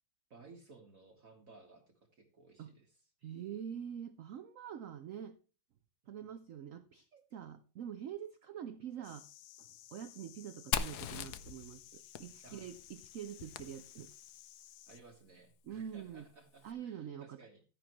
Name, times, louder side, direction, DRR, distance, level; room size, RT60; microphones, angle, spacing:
voice 1, 0.3-3.0 6.2-6.3 12.4-12.7 14.9-17.6, right 3 dB, 45° right, 1.7 m, -58 dB
voice 2, 3.2-5.4 6.1-9.3 9.6-14.1 15.6-16.3 16.6-17.4, right 9 dB, 85° right, 0.7 m, -45 dB
sound 1, 9.0-15.0, left 14 dB, 90° left, 1.5 m, -57 dB
Fire, 10.7-14.4, left 8 dB, 65° left, 1.1 m, -41 dB
13.5 x 10.0 x 3.0 m
omnidirectional pair, 2.2 m